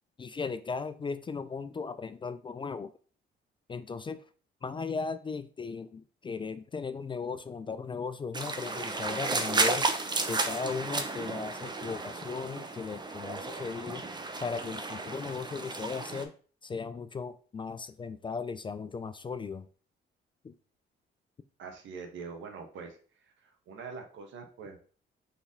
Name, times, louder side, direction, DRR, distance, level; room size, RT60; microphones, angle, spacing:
voice 1, 0.2-2.9 3.7-4.2 4.6-9.9 10.3-14.0 14.4-16.3 16.6-19.7 20.4-20.5, left 5 dB, 25° left, 13 dB, 0.3 m, -37 dB
sound 1, 8.3-16.2, right 3 dB, 20° right, 0.7 m, -33 dB
voice 2, 21.6-23.0 23.2-24.8, right 5 dB, 75° right, 5 dB, 1.1 m, -44 dB
4.2 x 3.5 x 3.6 m, 0.41 s
cardioid pair, 90°, 20 cm